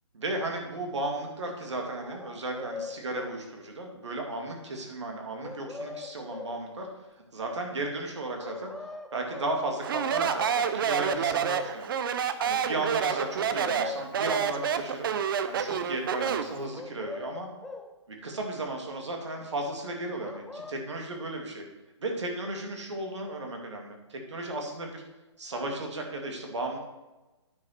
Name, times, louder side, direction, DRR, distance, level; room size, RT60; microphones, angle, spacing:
voice 1, 0.1-6.9 7.3-8.7 9.1-11.9 12.4-15.1 15.5-17.5 18.1-21.7 22.0-25.0 25.4-26.8, right 2 dB, 75° right, 2 dB, 2.6 m, -34 dB
sound 1, 2.0-3.4 5.4-6.6 8.4-9.6 10.6-10.7 10.9-11.8 13.1-14.5 16.7-17.9 20.2-20.7, left 3 dB, ahead, 0.4 m, -41 dB
Speech, 9.8-16.6, right 7 dB, 50° right, 0.7 m, -28 dB
9.3 x 5.6 x 6.0 m, 1.1 s
hypercardioid pair, 145°, 15 cm